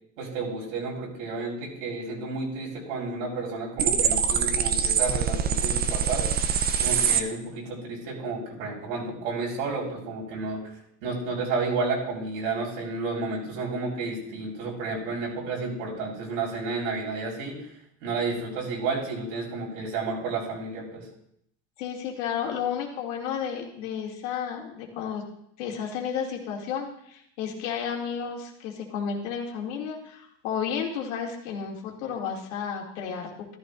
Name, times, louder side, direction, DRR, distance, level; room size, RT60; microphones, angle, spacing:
voice 1, 0.2-6.3 6.8-10.6 11.0-17.7 18.0-21.0, right 3 dB, 80° right, -3 dB, 4.4 m, -31 dB
sound 1, 3.8-7.2, right 7 dB, 25° right, 0.6 m, -24 dB
voice 2, 21.8-25.2 25.6-33.6, left 7 dB, 85° left, 0 dB, 2.5 m, -32 dB
13.5 x 12.0 x 2.5 m, 0.72 s
supercardioid pair, 140°, 36 cm